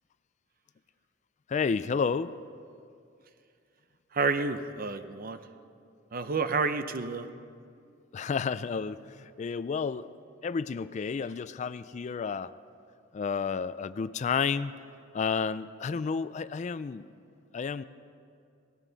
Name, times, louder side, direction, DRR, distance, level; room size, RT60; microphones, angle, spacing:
voice 1, 1.5-2.3 8.1-10.1 10.4-12.5 13.1-14.8 15.1-17.1 17.5-17.8, left 5 dB, 40° left, 15 dB, 0.3 m, -31 dB
voice 2, 4.1-5.4 6.1-7.3, right 4 dB, 50° right, 10 dB, 0.7 m, -29 dB
18.0 x 17.0 x 4.0 m, 2.4 s
head